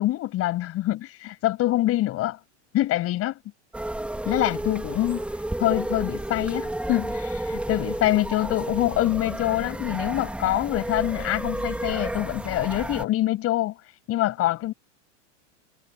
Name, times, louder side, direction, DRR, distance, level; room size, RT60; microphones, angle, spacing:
voice 1, 0.0-2.4 2.7-3.4 4.3-5.2 5.6-13.7 14.1-14.7, left 15 dB, 40° left, 7.7 m, -25 dB
sound 1, 3.7-13.0, right 1 dB, 5° right, 2.5 m, -31 dB
supercardioid pair, 130°, 37 cm